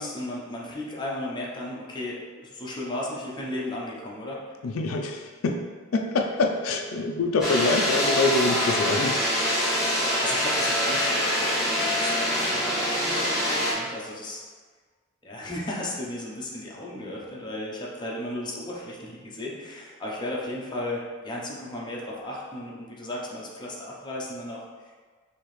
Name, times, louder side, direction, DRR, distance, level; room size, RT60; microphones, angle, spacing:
voice 1, 0.0-4.4 9.8-14.4 15.2-24.9, left 1 dB, 20° left, -4 dB, 0.7 m, -35 dB
voice 2, 4.6-5.6 5.9-9.2, left 3 dB, 90° left, 3 dB, 0.4 m, -25 dB
sound 1, 7.4-13.7, equal, ahead, 1.4 m, -25 dB
4.6 x 2.8 x 3.1 m, 1.5 s
head